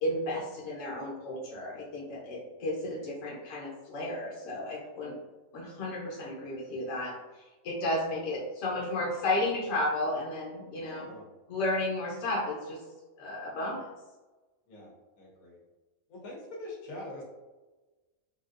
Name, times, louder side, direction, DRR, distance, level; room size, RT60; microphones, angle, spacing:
voice 1, 0.0-5.1 5.5-11.1 11.5-12.8 13.2-13.9, left 1 dB, 65° left, -4 dB, 1.2 m, -33 dB
voice 2, 10.8-11.2 14.7-14.9 15.2-15.6 16.1-17.2, left 1 dB, 90° left, -3 dB, 1.2 m, -44 dB
3.6 x 2.4 x 2.4 m, 1.2 s
omnidirectional pair, 1.5 m